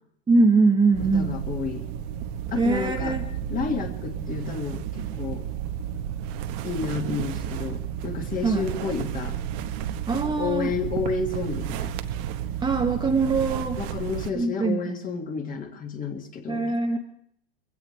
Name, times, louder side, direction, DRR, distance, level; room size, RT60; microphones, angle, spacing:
voice 1, 0.3-1.4 2.6-3.2 8.4-8.7 10.1-10.7 12.6-13.8 14.3-15.0 16.5-17.0, right 3 dB, 15° right, 2 dB, 1.0 m, -22 dB
sound 1, 0.9-14.3, right 9 dB, 45° right, 1.0 m, -32 dB
voice 2, 1.0-1.9 2.5-3.2 3.5-5.5 6.6-9.4 10.2-11.9 13.8-16.6, left 5 dB, 25° left, 5 dB, 1.8 m, -31 dB
22.0 x 16.5 x 3.2 m, 0.67 s
hypercardioid pair, 125°, 32 cm